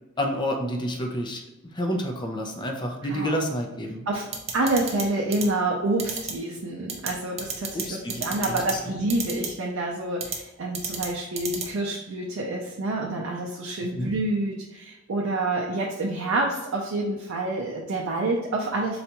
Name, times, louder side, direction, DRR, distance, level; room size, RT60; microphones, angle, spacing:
voice 1, 0.2-1.4 1.7-4.0 7.7-9.0 14.0-14.1, equal, 25° left, 2 dB, 0.4 m, -29 dB
voice 2, 3.0-3.4 4.1-4.3 4.5-19.0, right 2 dB, 80° right, -1 dB, 0.5 m, -28 dB
sound 1, 4.3-5.0 5.3-5.4 6.0-6.3 6.9-7.1 7.4-7.8 8.1-8.7 9.1-9.5 10.2-10.4 10.7-11.1 11.4-11.6, right 6 dB, 30° right, 0.5 m, -30 dB
3.9 x 2.3 x 2.8 m, 0.99 s
head